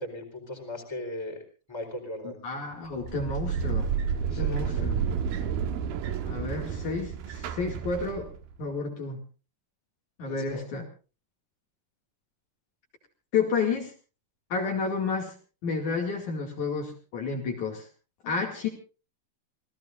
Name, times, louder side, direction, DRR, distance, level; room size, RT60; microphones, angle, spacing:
voice 1, 0.0-1.4 1.7-2.4 4.3-4.9 10.3-10.7, left 1 dB, 5° left, 2 dB, 3.8 m, -38 dB
voice 2, 2.2-3.9 4.4-5.0 6.2-8.3 8.6-9.2 10.2-10.9 13.3-13.9 14.5-15.3 15.6-17.9 18.2-18.7, left 4 dB, 60° left, 1 dB, 3.6 m, -31 dB
sound 1, 2.9-8.5, right 7 dB, 85° right, 3.1 m, -30 dB
27.5 x 17.5 x 2.6 m, 0.35 s
omnidirectional pair, 4.1 m